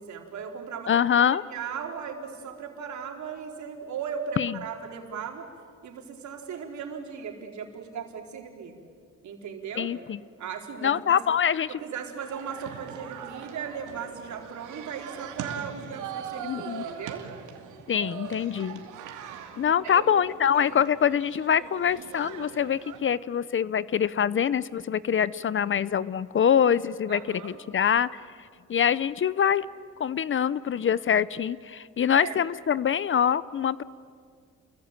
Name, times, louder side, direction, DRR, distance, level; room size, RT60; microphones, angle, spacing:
voice 1, 0.0-1.0 1.3-5.5 5.8-8.7 9.2-9.9 10.4-11.2 11.7-17.3 19.8-20.2 20.5-20.8 27.1-27.6 32.1-32.4, right 7 dB, 70° right, 2 dB, 4.1 m, -37 dB
voice 2, 0.9-1.4 4.4-4.5 9.8-10.2 10.8-11.7 16.4-16.8 17.9-18.8 19.6-28.1 28.7-29.7 30.0-33.8, left 8 dB, 40° left, 19 dB, 0.7 m, -24 dB
sound 1, 12.2-23.0, right 8 dB, 85° right, 2.6 m, -41 dB
29.5 x 22.5 x 9.0 m, 2.1 s
cardioid pair, 90°, 30 cm